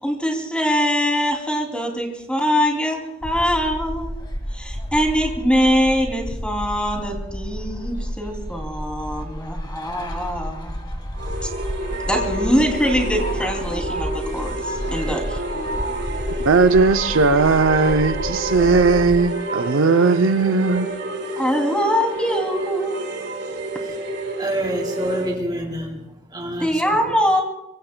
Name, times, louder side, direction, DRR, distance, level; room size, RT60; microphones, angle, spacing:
voice 1, 0.0-4.1 4.5-11.0 12.1-15.4 21.4-23.0 26.6-27.4, equal, 5° left, 1 dB, 2.7 m, -23 dB
sound 1, 3.2-19.3, equal, 20° left, 1.7 m, -31 dB
sound 2, 11.2-25.3, right 1 dB, 65° right, 3.4 m, -29 dB
voice 2, 16.4-20.9, right 4 dB, 80° right, 10 dB, 0.6 m, -17 dB
voice 3, 24.4-26.0 26.3-27.0, right 1 dB, 20° right, 2 dB, 2.6 m, -27 dB
25.0 x 23.5 x 2.2 m, 0.91 s
head